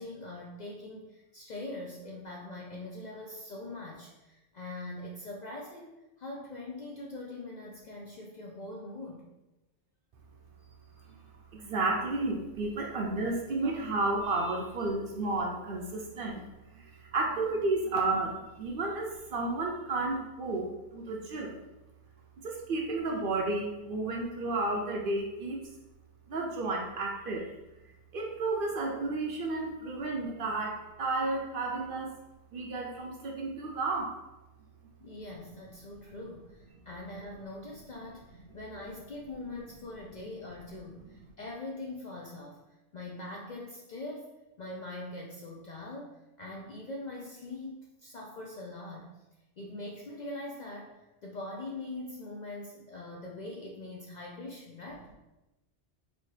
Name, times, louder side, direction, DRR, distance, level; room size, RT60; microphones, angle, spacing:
voice 1, 0.0-9.2 35.0-42.6 42.9-44.3 44.6-49.1 49.6-50.9 51.2-55.1, left 2 dB, 55° left, -2 dB, 0.5 m, -42 dB
voice 2, 11.5-16.4 16.7-21.6 22.4-25.6 26.3-27.5 28.1-32.1 32.5-34.1, right 2 dB, 60° right, 0 dB, 0.6 m, -32 dB
4.1 x 2.7 x 3.2 m, 1.0 s
omnidirectional pair, 1.2 m